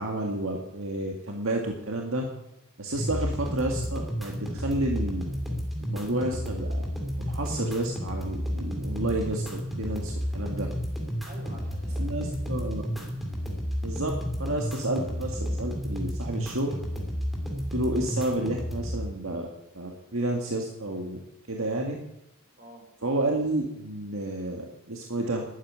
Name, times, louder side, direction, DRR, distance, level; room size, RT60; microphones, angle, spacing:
voice 1, 0.0-2.2 2.8-5.2 5.8-6.8 7.2-10.7 12.0-12.8 13.8-14.1 14.4-16.7 17.7-19.5 19.7-21.2 21.5-22.0 23.0-25.4, right 1 dB, 70° right, 1 dB, 1.9 m, -30 dB
sound 1, 3.0-19.0, equal, ahead, 3.1 m, -32 dB
voice 2, 11.2-13.0 22.6-22.9, right 1 dB, 45° right, 0 dB, 6.0 m, -49 dB
12.5 x 9.3 x 9.7 m, 0.88 s
head